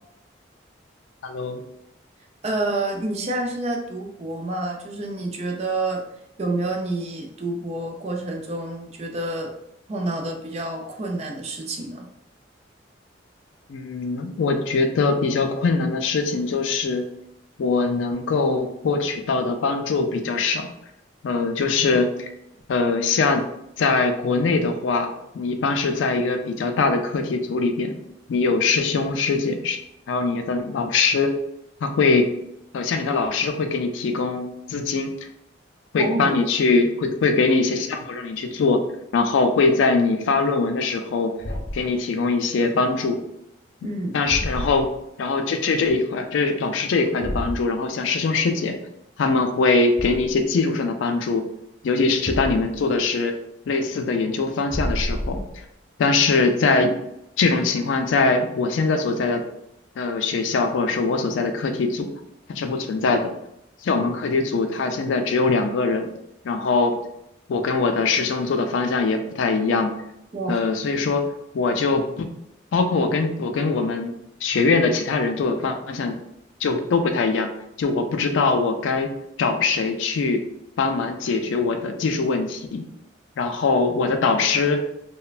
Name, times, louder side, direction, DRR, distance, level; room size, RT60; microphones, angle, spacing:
voice 1, 1.2-1.6 13.7-17.0 17.6-20.7 21.2-22.3 22.7-23.4 23.8-27.9 28.3-29.8 30.1-31.3 31.8-32.3 32.7-35.3 35.9-38.8 39.1-41.3 41.7-43.2 44.1-44.9 45.2-48.8 49.2-51.4 51.8-53.4 53.7-55.4 56.0-57.0 57.4-59.4 60.0-62.1 62.5-63.3 63.8-66.1 66.4-67.0 67.5-69.9 70.5-71.3 71.5-72.3 72.7-74.1 74.4-76.2 76.6-77.5 77.8-79.1 79.4-80.4 80.8-82.8 83.4-84.8, left 4 dB, 80° left, 6 dB, 0.3 m, -22 dB
voice 2, 2.4-6.0 6.4-9.5 9.9-12.1 36.0-36.4 43.8-44.2 70.3-70.6, right 2 dB, 35° right, 2 dB, 0.4 m, -28 dB
Thump thud, 41.4-41.9 44.3-45.0 47.2-47.7 50.0-50.4 52.3-52.9 54.7-55.7, equal, 50° left, 0.7 m, -29 dB
3.0 x 2.1 x 2.4 m, 0.82 s
head